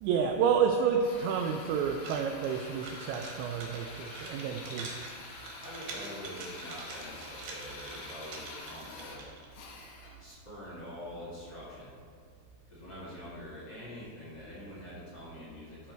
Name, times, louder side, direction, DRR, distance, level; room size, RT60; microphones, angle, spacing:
voice 1, 0.0-4.9, right 7 dB, 85° right, 3 dB, 2.6 m, -29 dB
Drill, 1.0-10.3, left 3 dB, 75° left, 2.6 m, -47 dB
sound 1, 2.0-9.5, right 3 dB, 65° right, 2.6 m, -46 dB
voice 2, 4.5-4.9 5.6-9.2 10.2-11.9 12.7-15.9, equal, 45° left, -10 dB, 1.4 m, -45 dB
12.5 x 4.4 x 4.5 m, 2.2 s
omnidirectional pair, 5.6 m